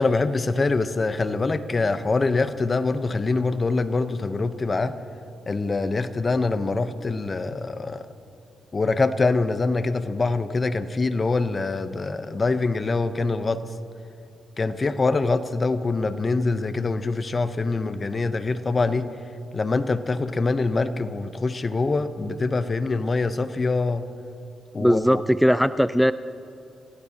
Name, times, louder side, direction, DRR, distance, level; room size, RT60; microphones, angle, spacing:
voice 1, 0.0-5.0 5.5-8.1 8.7-13.6 14.6-19.1 19.5-24.1 24.7-25.2, left 3 dB, 35° left, 11 dB, 0.9 m, -24 dB
voice 2, 24.8-26.1, equal, ahead, 13 dB, 0.4 m, -19 dB
28.0 x 16.5 x 2.9 m, 2.6 s
supercardioid pair, 60°, 0 cm